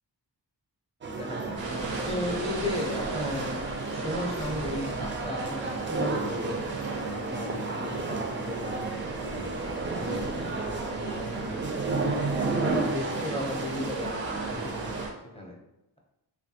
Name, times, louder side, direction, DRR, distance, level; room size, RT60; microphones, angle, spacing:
sound 1, 1.0-15.1, right 3 dB, 30° right, 0.3 m, -32 dB
voice 1, 1.1-1.7 2.0-5.6 5.9-6.7 7.1-9.5 9.9-11.7 12.1-14.2 14.5-14.9 15.3-15.6, left 1 dB, 15° left, 0 dB, 0.6 m, -36 dB
sound 2, 1.6-15.1, right 2 dB, 80° right, 0.6 m, -38 dB
3.1 x 2.2 x 2.7 m, 0.92 s
wide cardioid pair, 55°, 44 cm